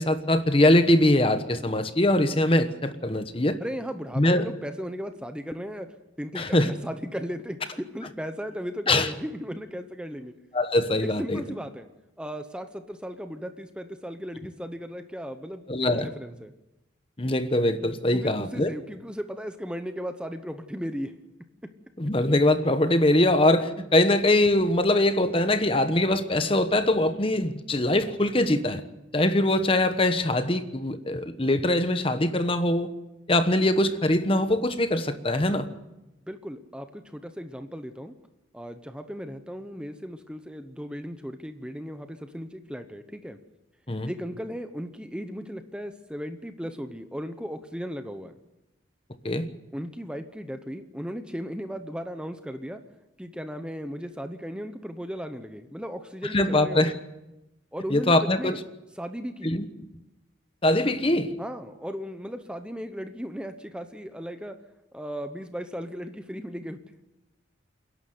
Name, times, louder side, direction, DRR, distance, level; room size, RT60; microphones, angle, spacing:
voice 1, 0.0-3.6 4.2-4.5 6.3-6.7 8.9-9.1 10.5-11.4 15.7-16.1 17.2-18.7 22.0-28.8 29.1-32.9 33.3-35.7 43.9-44.1 49.2-49.5 56.3-56.9 57.9-58.5 59.4-59.7 60.6-61.3, left 1 dB, 30° left, 10 dB, 1.1 m, -22 dB
voice 2, 3.6-10.3 11.0-11.9 12.2-16.5 18.1-21.1 21.6-21.7 36.3-38.1 38.5-43.4 44.0-48.3 49.7-52.8 53.2-56.9 57.7-58.6 59.0-59.5 61.4-64.6 64.9-66.8, equal, 5° right, 8 dB, 0.9 m, -36 dB
28.0 x 11.5 x 9.4 m, 0.97 s
head